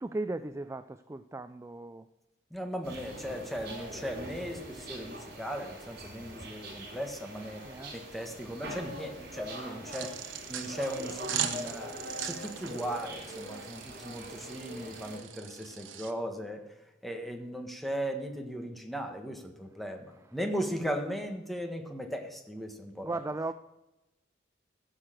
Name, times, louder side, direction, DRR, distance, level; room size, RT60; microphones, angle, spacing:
voice 1, 0.0-2.1 7.6-7.9 23.0-23.5, right 2 dB, 15° right, 12 dB, 0.3 m, -36 dB
voice 2, 2.5-7.7 7.9-10.2 10.5-16.7 17.0-23.2, equal, ahead, 4 dB, 1.4 m, -37 dB
sound 1, 2.8-15.2, equal, 55° right, 4.1 m, -43 dB
sound 2, 9.9-16.1, right 9 dB, 85° right, 1.1 m, -39 dB
15.5 x 6.5 x 7.7 m, 0.99 s
head